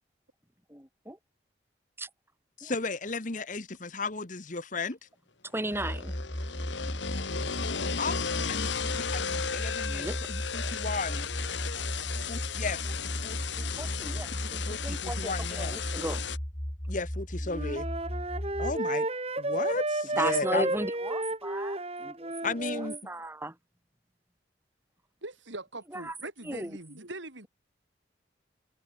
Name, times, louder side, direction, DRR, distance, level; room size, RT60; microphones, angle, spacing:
voice 1, 0.7-1.2 2.0-2.1 2.6-2.7 5.5-6.2 9.9-10.2 13.6-16.2 20.2-23.6 25.9-26.1 26.4-26.7, right 1 dB, 10° right, 5.0 m, -36 dB
voice 2, 2.6-5.0 8.0-8.2 8.5-11.3 12.3-13.0 13.2-13.4 14.7-15.8 16.9-17.8 18.6-19.0 19.4-20.7 22.4-22.9, left 3 dB, 45° left, 1.3 m, -34 dB
sound 1, 5.6-16.4, left 6 dB, 70° left, 1.4 m, -35 dB
sound 2, 5.7-18.8, equal, 25° left, 2.8 m, -36 dB
Wind instrument woodwind instrument, 17.5-23.0, right 1 dB, 30° right, 4.4 m, -32 dB
voice 3, 25.2-27.5, right 2 dB, 80° right, 4.6 m, -42 dB
head